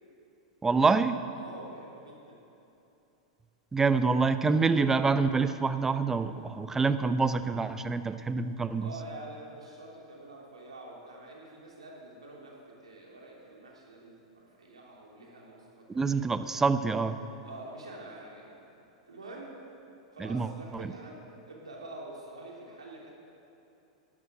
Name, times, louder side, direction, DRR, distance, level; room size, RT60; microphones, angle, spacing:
voice 1, 0.6-1.2 3.7-8.9 15.9-17.2 20.2-20.5 20.7-20.9, right 4 dB, 15° right, 12 dB, 0.6 m, -26 dB
voice 2, 1.3-2.4 8.8-16.2 17.4-18.7 19.1-19.6 20.1-21.2 21.5-23.1, right 2 dB, 85° right, -2 dB, 3.1 m, -46 dB
12.5 x 10.5 x 7.5 m, 2.8 s
hypercardioid pair, 100°, 3 cm